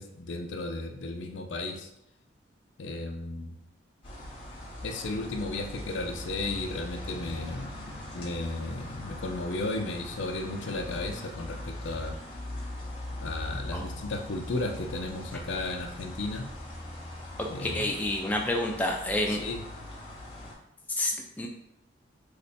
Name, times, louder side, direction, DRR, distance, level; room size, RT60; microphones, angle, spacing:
voice 1, 0.0-1.9 2.8-3.6 4.8-12.2 13.2-16.5 17.5-17.9 19.3-19.6, left 2 dB, 70° left, 4 dB, 0.5 m, -34 dB
sound 1, 4.0-20.5, left 1 dB, 25° left, 0.8 m, -41 dB
voice 2, 17.6-19.4 20.9-21.5, left 1 dB, 10° left, 0 dB, 0.3 m, -29 dB
3.1 x 2.1 x 4.1 m, 0.81 s
head